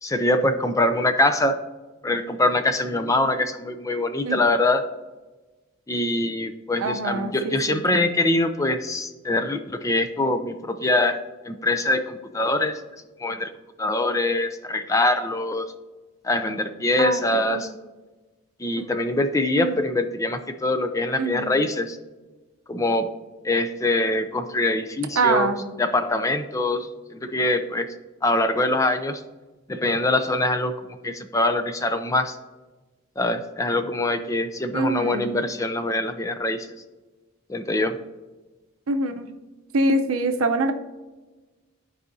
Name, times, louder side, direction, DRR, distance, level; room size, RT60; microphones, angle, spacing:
voice 1, 0.0-1.6 2.0-4.8 5.9-11.2 11.5-12.8 13.2-13.5 13.8-15.7 16.2-17.7 18.6-22.0 22.7-23.1 23.4-25.5 25.8-27.9 28.2-29.2 29.7-30.7 31.0-32.4 33.2-36.7 37.5-38.0, left 2 dB, 15° left, 8 dB, 0.4 m, -23 dB
voice 2, 6.8-8.0 17.0-17.2 17.5-17.6 18.8-18.9 19.6-19.8 21.2-21.5 25.2-25.7 34.7-35.3 38.9-39.3 39.7-40.7, right 2 dB, 80° right, 6 dB, 0.7 m, -24 dB
14.0 x 4.8 x 2.7 m, 1.2 s
head